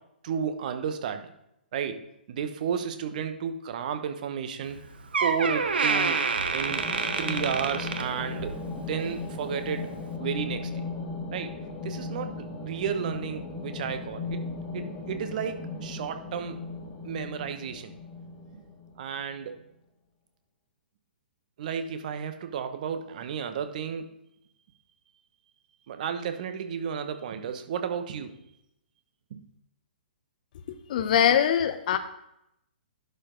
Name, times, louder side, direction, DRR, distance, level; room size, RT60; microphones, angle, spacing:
voice 1, 0.2-1.3 1.7-2.0 2.3-4.9 5.2-6.2 6.5-6.9 7.2-10.7 11.3-11.5 11.8-14.4 14.7-16.6 17.0-17.9 19.0-19.6 21.6-24.1 25.9-28.4 29.3-29.4, right 7 dB, 50° right, 8 dB, 1.0 m, -32 dB
Door, 4.7-4.8 5.1-8.6 9.0-9.3 10.0-10.1, right 5 dB, 75° right, 1.1 m, -28 dB
sound 1, 6.7-19.2, left 3 dB, 20° left, 1.6 m, -37 dB
voice 2, 30.7-32.0, left 9 dB, 50° left, 10 dB, 0.9 m, -23 dB
11.5 x 4.6 x 3.8 m, 0.80 s
figure-of-eight pair, 125°, 6 cm